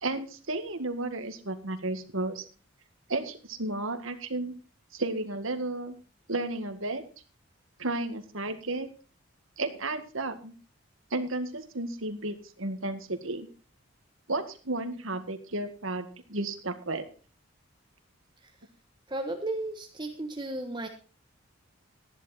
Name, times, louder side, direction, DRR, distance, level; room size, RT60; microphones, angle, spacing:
voice 1, 0.0-2.5 3.1-4.5 4.9-6.0 6.3-7.0 7.8-8.9 9.6-10.5 11.1-13.5 14.3-17.0, right 2 dB, 70° right, 8 dB, 2.0 m, -33 dB
voice 2, 19.1-20.9, right 2 dB, 20° right, 3 dB, 1.3 m, -34 dB
14.0 x 11.0 x 4.2 m, 0.36 s
head